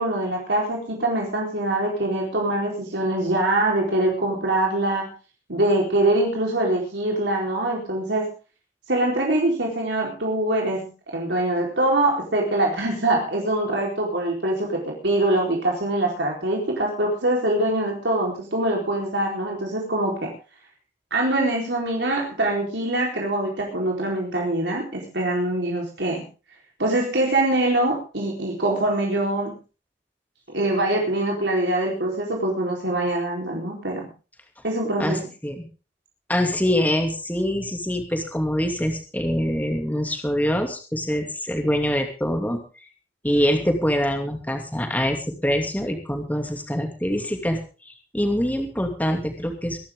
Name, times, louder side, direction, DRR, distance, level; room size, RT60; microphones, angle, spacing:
voice 1, 0.0-5.1 5.5-8.3 8.9-20.3 21.1-26.2 26.8-29.6 30.5-34.1 34.6-35.3, right 1 dB, 80° right, -1 dB, 4.3 m, -23 dB
voice 2, 35.0-35.7 36.3-42.6 43.2-47.6 47.9-49.8, equal, 10° left, 4 dB, 2.7 m, -24 dB
23.0 x 11.5 x 3.8 m, 0.35 s
head